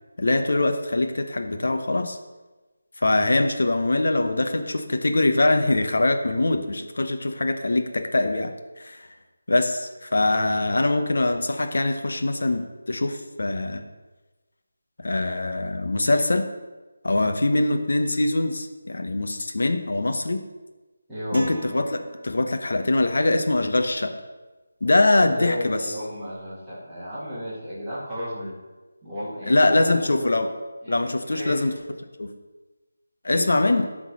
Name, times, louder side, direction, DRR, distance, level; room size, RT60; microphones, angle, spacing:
voice 1, 0.2-2.2 3.0-9.1 9.5-13.8 15.0-16.5 17.0-20.4 21.3-24.2 24.8-25.8 29.5-30.5 30.9-31.7 32.2-32.3 33.2-33.8, left 2 dB, 65° left, 6 dB, 1.0 m, -23 dB
voice 2, 21.1-21.5 25.3-28.5 29.0-30.5 30.8-31.6 33.3-33.8, equal, ahead, -17 dB, 2.2 m, -34 dB
sound 1, 21.3-22.8, right 3 dB, 45° right, 1.6 m, -41 dB
11.5 x 3.9 x 6.3 m, 1.2 s
figure-of-eight pair, 175°, 0 cm